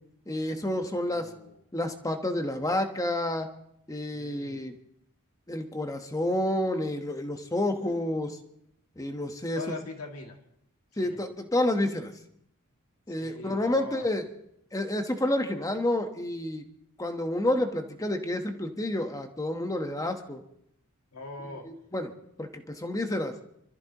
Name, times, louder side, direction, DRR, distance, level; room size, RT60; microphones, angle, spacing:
voice 1, 0.3-1.3 1.7-3.5 3.9-4.7 5.5-8.4 9.0-9.6 11.0-12.1 13.1-14.2 14.7-16.6 17.0-20.4 21.6-22.1 22.4-23.3, left 1 dB, 15° left, 6 dB, 1.1 m, -29 dB
voice 2, 1.1-1.6 4.1-4.7 9.5-10.4 11.0-11.2 13.1-14.1 21.1-21.6, left 3 dB, 85° left, 2 dB, 2.3 m, -41 dB
26.5 x 13.5 x 3.0 m, 0.75 s
head